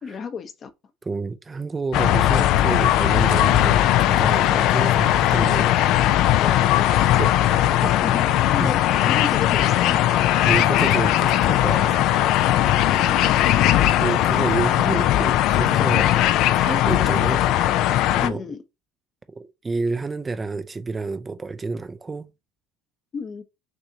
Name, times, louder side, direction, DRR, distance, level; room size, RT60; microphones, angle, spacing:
voice 1, 0.0-0.7 6.4-10.0 12.9-13.3 18.2-18.6 23.1-23.4, left 6 dB, 40° left, 0.9 m, -33 dB
voice 2, 1.0-5.8 7.0-7.4 7.8-7.9 8.6-8.7 10.4-12.0 12.3-13.0 14.0-16.1 16.5-17.5 18.2-18.4 19.3-22.3, right 3 dB, 20° right, 0.5 m, -29 dB
sound 1, 1.9-18.3, left 13 dB, 65° left, 0.5 m, -19 dB
6.1 x 2.7 x 2.8 m
hypercardioid pair, 80°, 0 cm